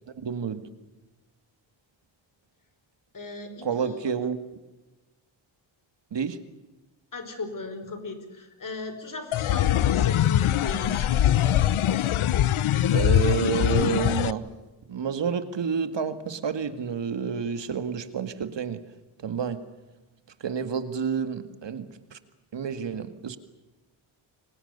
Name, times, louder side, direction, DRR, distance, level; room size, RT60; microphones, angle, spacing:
voice 1, 0.1-0.7 3.6-4.4 6.1-6.4 12.9-14.5 14.9-18.8 19.2-19.6 20.4-22.2 22.5-23.4, right 7 dB, 60° right, 10 dB, 2.1 m, -29 dB
voice 2, 3.1-4.0 7.1-11.1, left 3 dB, 40° left, 8 dB, 5.1 m, -37 dB
sound 1, 9.3-14.3, left 11 dB, 85° left, 0.9 m, -22 dB
30.0 x 23.5 x 6.9 m, 1.1 s
wide cardioid pair, 130°, 47 cm